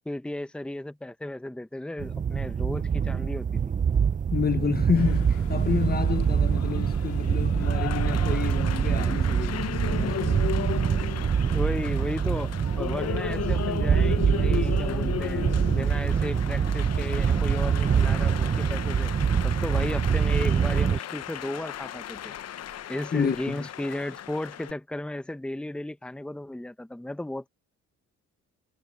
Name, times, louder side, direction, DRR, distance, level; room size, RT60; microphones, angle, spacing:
voice 1, 0.0-3.6 11.5-15.4 15.7-19.1 19.4-22.3 22.9-27.5, left 1 dB, 5° left, 1.0 m, -34 dB
sound 1, 2.0-21.0, right 7 dB, 25° right, 0.5 m, -25 dB
voice 2, 4.3-10.4 10.8-10.9 23.1-23.7, left 6 dB, 30° left, 1.0 m, -29 dB
sound 2, 4.9-18.5, left 11 dB, 75° left, 3.2 m, -55 dB
Applause, 5.0-24.7, left 10 dB, 55° left, 0.9 m, -36 dB
cardioid pair, 90°, 30 cm